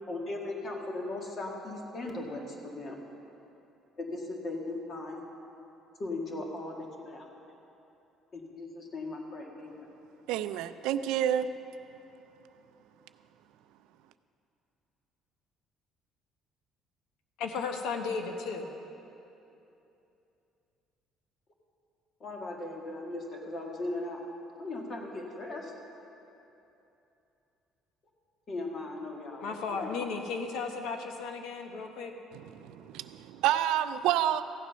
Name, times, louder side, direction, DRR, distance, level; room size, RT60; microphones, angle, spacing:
voice 1, 0.1-3.0 4.0-5.2 6.0-7.3 8.3-9.8 22.2-24.2 24.6-25.7 28.5-29.9, left 2 dB, 35° left, 0 dB, 1.8 m, -38 dB
voice 2, 10.3-11.5 32.3-34.4, right 11 dB, 85° right, 12 dB, 0.4 m, -29 dB
voice 3, 17.4-18.7 29.4-32.1, left 5 dB, 80° left, 4 dB, 1.0 m, -35 dB
15.5 x 8.2 x 5.6 m, 2.9 s
cardioid pair, 130°, 0 cm